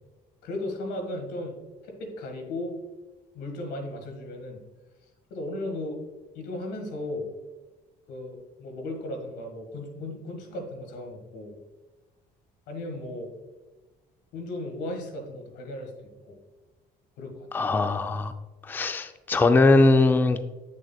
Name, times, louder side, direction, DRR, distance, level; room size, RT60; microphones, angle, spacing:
voice 1, 0.4-1.6 1.8-2.8 3.3-4.6 5.3-6.0 6.3-7.3 8.1-11.6 12.7-13.3 14.3-15.9 16.3-16.4 17.2-17.7, left 1 dB, 90° left, 4 dB, 1.7 m, -36 dB
voice 2, 17.5-18.3 18.7-20.4, left 2 dB, 10° left, 9 dB, 0.4 m, -20 dB
8.6 x 6.3 x 2.3 m, 1.2 s
cardioid pair, 110°, 17 cm